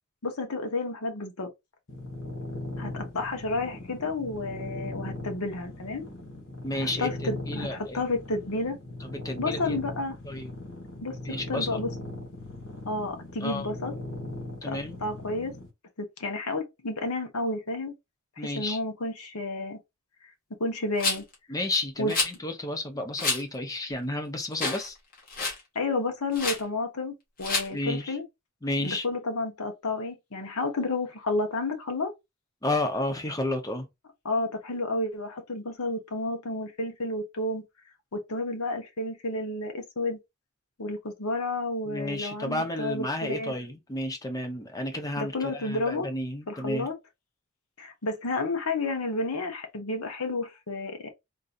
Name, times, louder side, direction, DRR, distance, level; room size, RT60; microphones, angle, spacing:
voice 1, 0.2-1.5 2.8-6.0 6.8-8.8 9.4-10.2 11.0-11.1 11.5-11.9 12.9-14.0 14.7-15.5 16.0-17.9 18.4-19.8 20.6-21.2 22.0-22.1 25.7-28.2 28.8-32.1 34.2-37.6 38.1-40.2 40.8-43.5 45.2-46.1 46.5-46.9 47.8-51.1, left 2 dB, 80° left, 1.0 m, -31 dB
sound 1, 1.9-15.7, left 1 dB, 60° left, 1.3 m, -39 dB
voice 2, 6.6-8.0 9.0-9.8 10.2-10.5 11.2-11.8 13.4-13.7 14.6-15.0 18.4-18.8 21.5-24.9 27.7-28.2 28.6-29.0 32.6-33.9 41.9-46.9, left 1 dB, 15° left, 0.7 m, -32 dB
Rattle, 21.0-21.3 22.1-22.3 23.2-23.4 23.9-24.0 24.5-24.9 25.1-25.6 26.3-26.6 27.4-27.7, left 3 dB, 40° left, 1.4 m, -28 dB
3.8 x 2.7 x 2.5 m
head